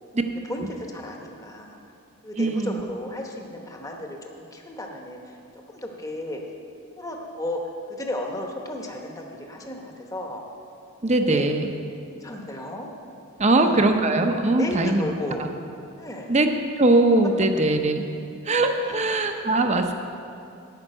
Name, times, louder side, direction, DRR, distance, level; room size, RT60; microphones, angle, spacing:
voice 1, 0.5-1.8 2.2-5.4 5.7-6.4 7.0-7.6 7.9-10.5 11.2-11.5 12.2-12.9 13.5-13.9 14.5-15.5 16.0-16.4 18.8-19.1, left 1 dB, 15° left, 1 dB, 0.9 m, -34 dB
voice 2, 2.4-2.8 11.0-11.7 13.4-15.1 16.3-16.5 16.8-18.0 18.4-19.9, right 2 dB, 30° right, 6 dB, 0.7 m, -21 dB
10.5 x 5.9 x 8.8 m, 2.6 s
head